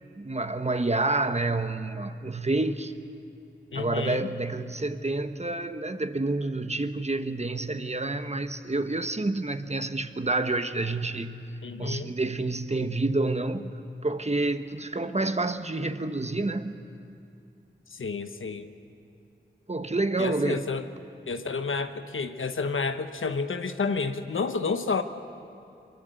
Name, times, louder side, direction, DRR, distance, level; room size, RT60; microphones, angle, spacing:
voice 1, 0.2-2.9 3.7-11.5 11.8-13.7 14.0-16.8 19.7-20.7, right 2 dB, 35° right, 9 dB, 1.2 m, -28 dB
voice 2, 3.7-4.3 11.6-12.1 17.9-18.7 20.2-20.9 21.3-25.0, left 4 dB, 85° left, 8 dB, 1.0 m, -30 dB
23.5 x 22.5 x 8.0 m, 2.6 s
cardioid pair, 40°, 20 cm